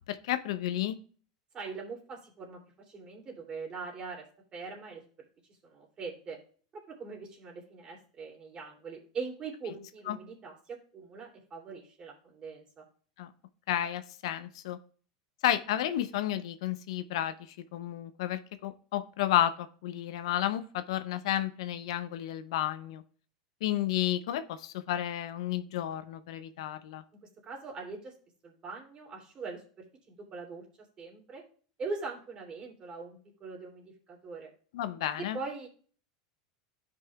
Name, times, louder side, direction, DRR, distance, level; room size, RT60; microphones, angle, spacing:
voice 1, 0.1-1.0 10.1-10.2 13.2-13.3 13.7-14.8 15.4-17.3 17.7-23.0 23.6-27.0 34.7-35.4, left 12 dB, 75° left, 12 dB, 0.6 m, -31 dB
voice 2, 1.5-4.3 4.5-5.3 5.6-6.4 6.7-12.8 27.2-28.1 28.4-30.7 31.0-31.4 31.8-34.5 35.2-35.7, right 4 dB, 30° right, 0 dB, 2.7 m, -42 dB
12.0 x 5.3 x 2.3 m, 0.43 s
hypercardioid pair, 110°, 3 cm